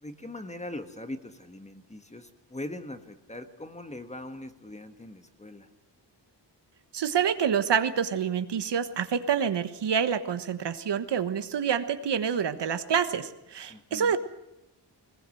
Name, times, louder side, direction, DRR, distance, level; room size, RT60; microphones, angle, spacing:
voice 1, 0.0-5.7 13.7-14.1, left 1 dB, 15° left, 8 dB, 1.5 m, -41 dB
voice 2, 6.9-14.2, right 7 dB, 70° right, 10 dB, 1.4 m, -27 dB
21.0 x 20.0 x 7.8 m, 0.88 s
wide cardioid pair, 150°, 43 cm